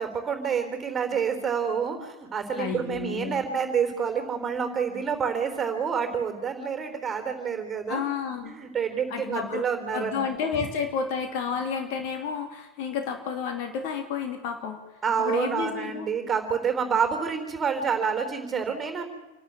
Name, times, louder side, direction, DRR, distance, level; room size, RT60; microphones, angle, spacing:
voice 1, 0.0-8.0 8.4-10.3 15.0-19.1, right 6 dB, 20° right, 6 dB, 3.9 m, -28 dB
voice 2, 2.6-3.4 7.9-8.5 9.1-9.6 9.9-14.8 15.2-16.1, left 6 dB, 45° left, 5 dB, 3.0 m, -31 dB
27.5 x 12.0 x 9.0 m, 1.1 s
figure-of-eight pair, 90°, 0 cm